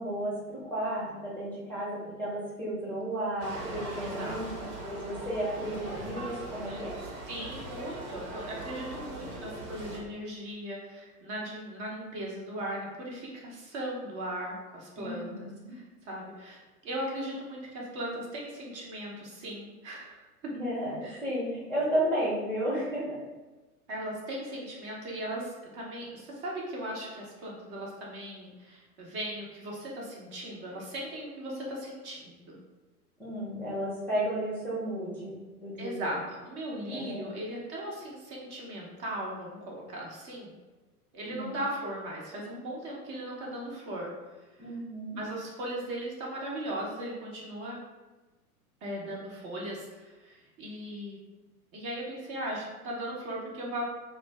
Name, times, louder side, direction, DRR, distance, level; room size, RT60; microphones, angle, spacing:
voice 1, 0.0-4.5 4.8-6.9 15.0-15.7 20.5-23.2 33.2-35.4 35.6-36.1 36.9-37.2 41.2-41.5 44.6-45.2, right 1 dB, 5° left, -8 dB, 0.6 m, -33 dB
sound 1, 3.4-10.0, right 1 dB, 70° right, 1.0 m, -40 dB
voice 2, 4.0-4.4 7.3-20.5 21.0-21.2 23.9-32.6 35.8-40.5 41.1-44.1 44.6-44.7 45.2-47.8 48.8-51.2 51.7-53.8, right 1 dB, 30° right, -3 dB, 0.7 m, -38 dB
2.5 x 2.2 x 3.2 m, 1.2 s
figure-of-eight pair, 100°, 46 cm